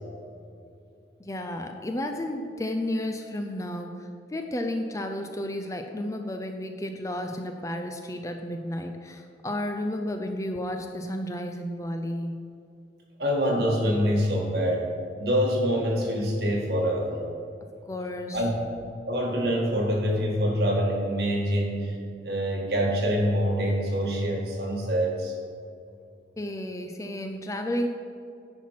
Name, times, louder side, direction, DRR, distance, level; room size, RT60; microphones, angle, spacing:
voice 1, 1.2-12.5 17.9-18.4 26.4-27.9, left 1 dB, 15° left, 5 dB, 0.4 m, -32 dB
voice 2, 13.2-14.8 15.2-17.2 18.3-18.5 19.1-21.9 22.2-25.3, equal, 60° right, -2 dB, 1.8 m, -25 dB
10.0 x 4.5 x 5.8 m, 2.6 s
head